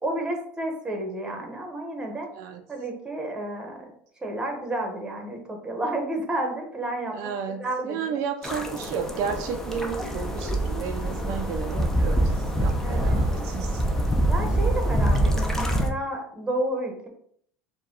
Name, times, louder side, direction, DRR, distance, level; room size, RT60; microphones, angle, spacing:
voice 1, 0.0-2.3 2.7-3.9 4.2-7.2 7.6-8.2 12.8-13.2 14.3-17.1, right 1 dB, 10° right, 2 dB, 1.0 m, -31 dB
voice 2, 7.1-13.8, right 7 dB, 60° right, 5 dB, 0.4 m, -32 dB
sound 1, 8.4-15.9, right 1 dB, 5° left, 0.6 m, -25 dB
4.6 x 2.3 x 3.8 m, 0.64 s
supercardioid pair, 120°, 6 cm